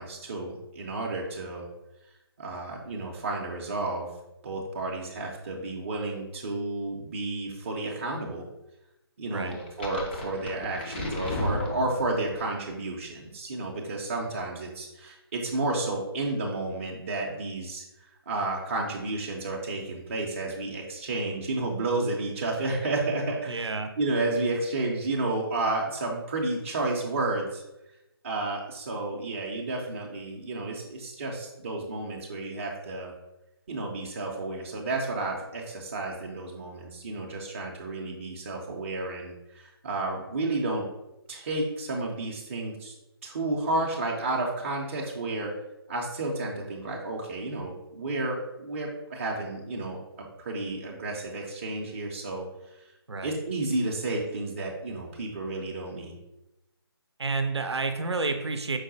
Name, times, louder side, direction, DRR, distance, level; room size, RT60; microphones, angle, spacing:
voice 1, 0.0-1.7 2.4-4.1 4.4-8.5 9.2-17.8 18.3-23.7 24.0-27.6 28.2-33.1 33.7-40.9 41.3-42.9 43.2-45.5 45.9-50.0 50.4-52.5 53.2-56.2, right 2 dB, 30° right, -2 dB, 0.5 m, -31 dB
sound 1, 9.5-12.4, left 1 dB, 25° left, 0.5 m, -33 dB
voice 2, 23.5-23.9 53.1-53.4 57.2-58.8, right 3 dB, 85° right, 7 dB, 0.5 m, -30 dB
4.6 x 2.1 x 3.9 m, 0.93 s
figure-of-eight pair, 155°, 14 cm